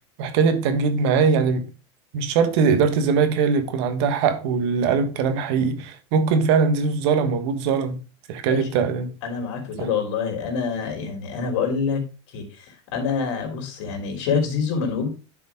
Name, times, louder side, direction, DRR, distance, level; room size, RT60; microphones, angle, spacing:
voice 1, 0.2-1.7 2.1-8.0 8.3-9.1 9.8-9.9, right 5 dB, 70° right, 1.5 m, -21 dB
voice 2, 9.2-12.0 12.3-15.1, left 6 dB, 75° left, 3.2 m, -26 dB
10.0 x 5.3 x 3.6 m
supercardioid pair, 115°, 15 cm